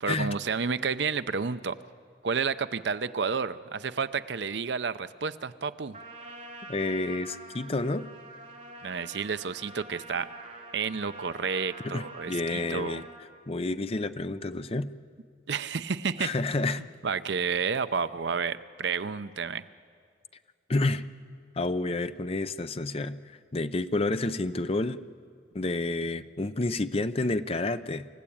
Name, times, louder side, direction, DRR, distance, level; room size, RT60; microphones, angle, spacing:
voice 1, 0.0-1.8 2.2-5.9 8.8-10.3 10.7-13.0 15.5-16.3 16.8-19.6, right 5 dB, 65° right, 13 dB, 0.6 m, -30 dB
Trumpet, 5.9-13.2, right 1 dB, 40° right, 3.4 m, -46 dB
voice 2, 6.7-8.1 11.8-13.0 13.5-14.9 16.2-16.8 20.7-21.0 21.6-23.2 23.5-25.0 25.5-28.1, left 2 dB, 30° left, 11 dB, 0.6 m, -29 dB
28.0 x 15.0 x 8.6 m, 2.2 s
head